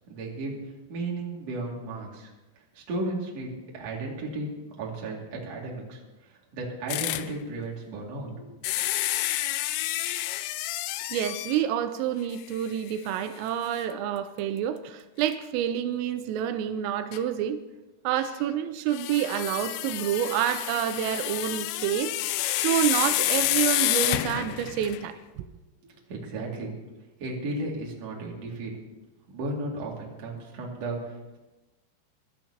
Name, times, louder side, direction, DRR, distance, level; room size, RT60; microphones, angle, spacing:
voice 1, 0.1-0.5 0.9-2.3 2.7-4.5 4.8-8.5 25.8-26.7 27.2-28.7 29.3-31.4, right 2 dB, 45° right, -3 dB, 2.6 m, -34 dB
sound 1, 6.9-7.3 8.6-11.7 12.3-12.4 12.9-13.0 15.2-15.3 17.1-17.2 18.9-25.1, left 15 dB, 85° left, 3.1 m, -29 dB
voice 2, 11.1-17.6 18.0-22.2 22.5-25.5, right 10 dB, 85° right, 10 dB, 3.2 m, -28 dB
24.0 x 12.0 x 2.9 m, 1.1 s
omnidirectional pair, 5.8 m